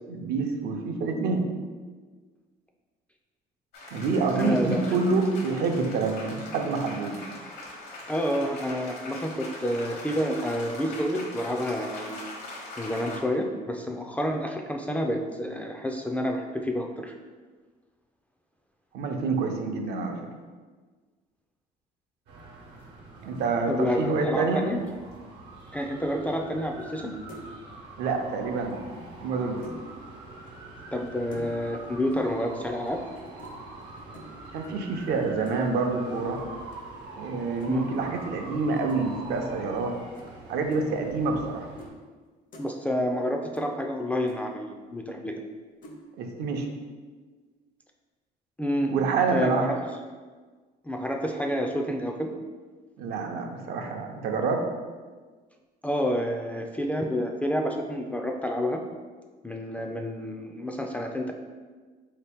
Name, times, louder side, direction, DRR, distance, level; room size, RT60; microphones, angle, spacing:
voice 1, 0.1-1.4 3.9-7.2 18.9-20.2 23.2-24.7 28.0-28.8 29.2-29.7 34.5-36.4 37.2-39.9 40.5-41.7 46.2-46.7 48.9-49.7 53.0-54.7, right 4 dB, 70° right, 3 dB, 0.6 m, -27 dB
sound 1, 3.7-13.2, left 2 dB, 70° left, 1.0 m, -41 dB
voice 2, 4.4-5.2 8.1-12.2 12.8-17.1 23.7-24.8 25.7-27.1 30.9-33.0 37.7-37.9 42.6-45.3 48.6-48.9 49.3-49.8 50.8-52.3 55.8-58.8 59.4-61.3, equal, 10° left, 2 dB, 0.3 m, -29 dB
sound 2, 22.3-41.9, right 2 dB, 90° right, 0.9 m, -44 dB
sound 3, 26.8-27.0 27.3-27.6 28.9-29.9 31.3-31.8 32.1-32.4 33.4-33.6 34.1-34.4 35.5-35.8 37.6-37.7 38.9-39.0 40.1-40.3 40.7-40.8 41.8-41.9 42.2-42.7 43.5-43.7 43.9-44.0 44.3-44.4 45.8-46.0, equal, 55° left, 0.6 m, -46 dB
4.0 x 2.8 x 3.5 m, 1.4 s
cardioid pair, 110°, 17 cm